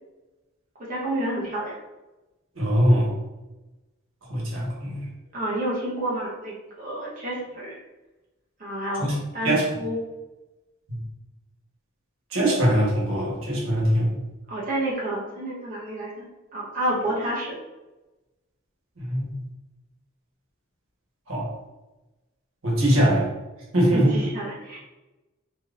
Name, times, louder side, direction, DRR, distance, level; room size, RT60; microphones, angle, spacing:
voice 1, 0.8-1.7 5.3-7.8 8.6-10.0 14.5-16.3 16.5-17.6 22.9-23.2 23.9-24.8, right 1 dB, 40° right, -6 dB, 0.9 m, -30 dB
voice 2, 2.6-3.1 4.3-5.0 9.0-9.1 9.4-9.6 12.3-14.1 19.0-19.4 21.3-21.5 22.6-23.3 23.7-24.1, equal, 90° right, -4 dB, 1.2 m, -22 dB
3.6 x 2.9 x 2.5 m, 1.1 s
head